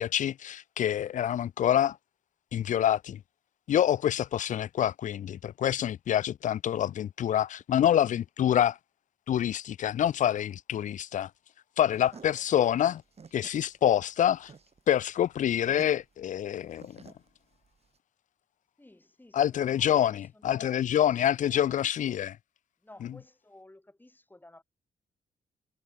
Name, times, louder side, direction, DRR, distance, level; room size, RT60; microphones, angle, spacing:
voice 1, 0.0-2.0 2.5-3.2 3.7-8.8 9.3-11.3 11.8-13.0 13.3-14.5 14.9-17.1 19.3-22.4, left 10 dB, 55° left, 0.4 m, -26 dB
sound 1, 11.9-18.0, right 5 dB, 40° right, 4.5 m, -54 dB
voice 2, 12.1-12.4 18.8-21.7 22.8-24.6, left 1 dB, 10° left, 5.7 m, -55 dB
cardioid pair, 100°, 16 cm